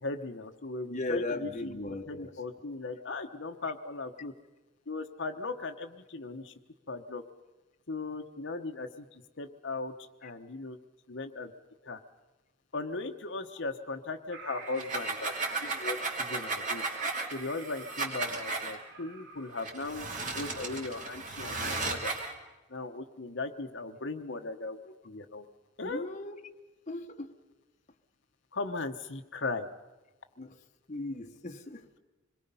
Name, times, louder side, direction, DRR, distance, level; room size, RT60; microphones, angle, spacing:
voice 1, 0.0-1.8 2.1-4.3 4.9-6.5 6.9-7.2 7.9-9.9 10.2-10.8 11.1-11.5 11.8-12.0 12.7-15.3 15.6-16.8 17.3-22.1 22.7-25.5 25.8-26.1 28.5-29.7, left 3 dB, 65° left, 5 dB, 1.0 m, -38 dB
voice 2, 0.9-2.3 25.8-26.4 26.9-27.3 30.4-30.6 30.9-31.9, left 2 dB, 35° left, 4 dB, 1.0 m, -37 dB
sound 1, 14.3-19.6, right 4 dB, 60° right, 2.2 m, -48 dB
sound 2, 14.7-18.7 19.6-22.3, right 3 dB, 40° right, 2.5 m, -35 dB
26.0 x 22.0 x 5.5 m, 1.1 s
head